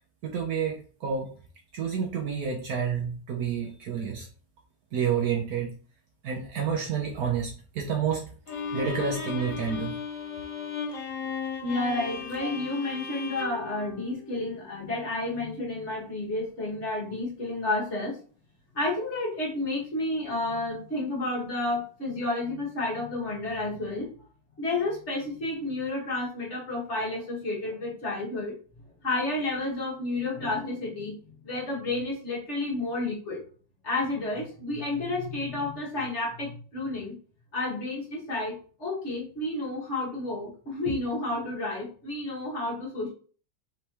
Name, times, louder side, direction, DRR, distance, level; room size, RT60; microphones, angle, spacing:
voice 1, 0.2-1.3 1.7-4.3 4.9-5.7 6.2-8.3 8.7-10.0 12.4-12.5, right 7 dB, 65° right, 1 dB, 1.0 m, -29 dB
Bowed string instrument, 8.5-14.7, left 6 dB, 60° left, 1.0 m, -36 dB
voice 2, 11.6-18.2 18.7-24.1 24.6-28.5 29.0-31.1 31.4-33.4 33.8-37.2 37.5-43.1, left 2 dB, 40° left, -3 dB, 1.7 m, -31 dB
4.4 x 3.3 x 2.9 m, 0.39 s
omnidirectional pair, 1.9 m